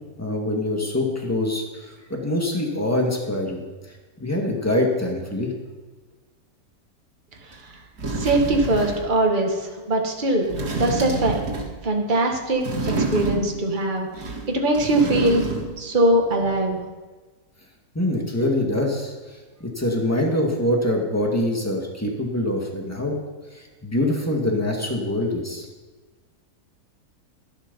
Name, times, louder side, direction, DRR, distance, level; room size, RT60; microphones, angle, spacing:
voice 1, 0.2-3.6 4.2-5.5 17.9-23.2 23.5-25.6, left 1 dB, 10° left, 0 dB, 2.1 m, -24 dB
sound 1, 7.5-7.6 8.0-9.1 10.4-11.8 12.6-13.7 14.1-15.8 16.1-16.2, right 2 dB, 90° right, 2.4 m, -28 dB
voice 2, 8.1-11.4 11.8-12.6 13.0-15.4 15.8-16.8, right 1 dB, 30° right, 1 dB, 1.8 m, -22 dB
12.0 x 11.5 x 5.5 m, 1.3 s
omnidirectional pair, 1.6 m